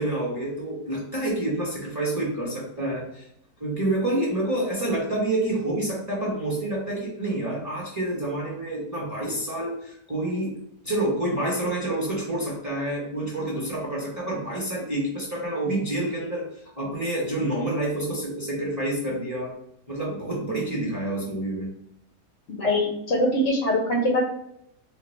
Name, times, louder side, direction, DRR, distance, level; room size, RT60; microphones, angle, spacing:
voice 1, 0.0-3.3 3.6-10.6 10.8-16.4 16.8-19.5 19.9-21.7, right 1 dB, 15° right, -4 dB, 0.9 m, -28 dB
voice 2, 22.6-24.2, left 1 dB, 60° left, -2 dB, 0.8 m, -22 dB
4.3 x 2.3 x 3.2 m, 0.75 s
omnidirectional pair, 1.7 m